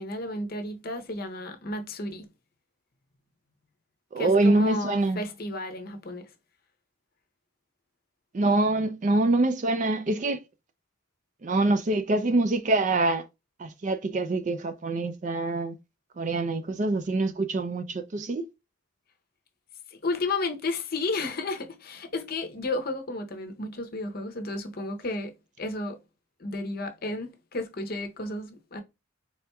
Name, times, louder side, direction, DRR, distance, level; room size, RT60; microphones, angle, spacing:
voice 1, 0.0-2.3 4.2-6.3 19.9-26.0 26.4-28.8, left 2 dB, 45° left, 0.7 m, -33 dB
voice 2, 4.1-5.2 8.3-10.4 11.4-13.3 13.6-15.8 16.2-18.5, right 2 dB, 35° right, 0.4 m, -25 dB
4.3 x 3.4 x 2.3 m
head